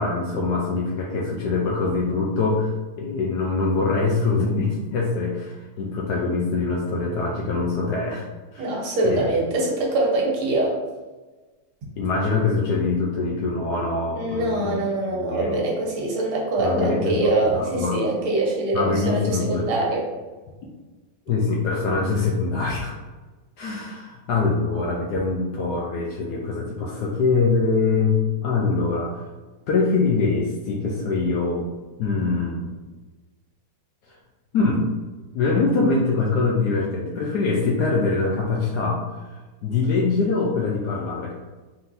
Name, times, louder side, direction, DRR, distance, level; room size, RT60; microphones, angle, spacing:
voice 1, 0.0-8.3 8.5-8.8 9.0-9.2 12.0-14.8 15.1-15.6 16.6-18.0 18.7-19.7 21.3-22.9 23.6-29.3 29.7-31.6 32.0-32.7 34.5-34.8 35.3-39.0 39.6-41.3, left 4 dB, 80° left, -2 dB, 0.9 m, -23 dB
voice 2, 8.6-10.8 14.1-20.1, right 2 dB, 75° right, -2 dB, 1.9 m, -23 dB
4.2 x 3.7 x 2.6 m, 1.2 s
omnidirectional pair, 2.4 m